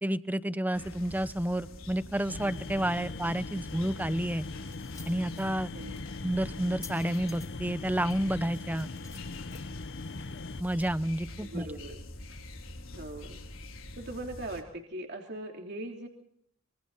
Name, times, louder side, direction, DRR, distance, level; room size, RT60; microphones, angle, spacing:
voice 1, 0.0-4.5 5.1-5.7 6.2-8.9 10.6-11.6, right 1 dB, 10° right, 14 dB, 0.8 m, -30 dB
sound 1, 0.7-14.6, left 1 dB, 85° left, 4.4 m, -46 dB
sound 2, 1.9-12.1, left 4 dB, 20° left, 3.7 m, -55 dB
sound 3, 2.3-10.6, left 3 dB, 60° left, 0.7 m, -41 dB
voice 2, 11.4-12.0 12.8-13.4 14.0-16.1, right 1 dB, 55° right, 2 dB, 3.1 m, -40 dB
26.0 x 25.5 x 4.1 m, 0.69 s
head